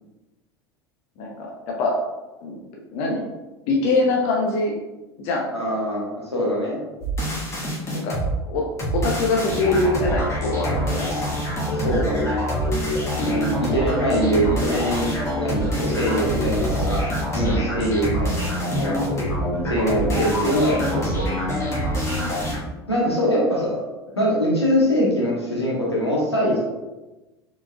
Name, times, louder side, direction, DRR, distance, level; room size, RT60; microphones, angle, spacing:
voice 1, 1.2-1.9 2.4-2.6 2.9-3.3 3.7-4.8 5.2-5.5 7.9-8.2 8.4-8.6 8.9-11.1 13.1-13.4 17.4-17.7 20.0-20.3, left 3 dB, 45° left, -1 dB, 0.7 m, -23 dB
voice 2, 5.5-6.8 10.9-11.0 11.7-12.4 13.2-17.0 17.3-19.0 19.7-21.2 22.9-23.8 24.1-26.7, equal, 85° left, -5 dB, 1.3 m, -23 dB
sound 1, 7.0-8.3 8.8-22.6, equal, 20° left, 1.4 m, -25 dB
4.4 x 4.1 x 2.3 m, 1.1 s
figure-of-eight pair, 75°, 13 cm